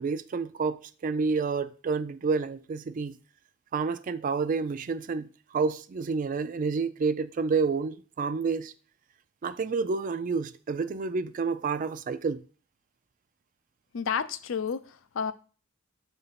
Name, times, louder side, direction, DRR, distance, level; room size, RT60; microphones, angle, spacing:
voice 1, 0.0-3.2 3.7-8.7 9.4-12.4, right 4 dB, 40° right, 0.3 m, -29 dB
voice 2, 13.9-15.3, left 6 dB, 80° left, 0.5 m, -31 dB
6.9 x 2.7 x 5.6 m
head